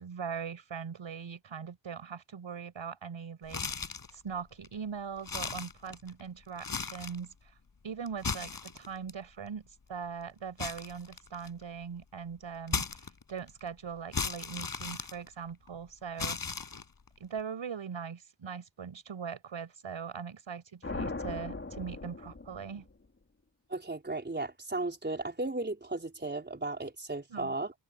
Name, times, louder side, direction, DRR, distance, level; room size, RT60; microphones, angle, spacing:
voice 1, 0.0-3.6 4.1-7.3 7.8-16.4 17.2-22.9 27.3-27.5, right 6 dB, 75° right, 6.2 m, -41 dB
sound 1, 3.5-4.1 4.6-4.7 5.2-6.2 6.6-7.2 8.1-9.1 10.6-11.6 12.7-13.5 14.1-15.7 16.2-17.1, left 4 dB, 45° left, 6.0 m, -36 dB
sound 2, 20.8-23.1, left 3 dB, 25° left, 3.7 m, -39 dB
voice 2, 23.7-27.7, right 2 dB, 20° right, 4.8 m, -35 dB
wide cardioid pair, 110°, 46 cm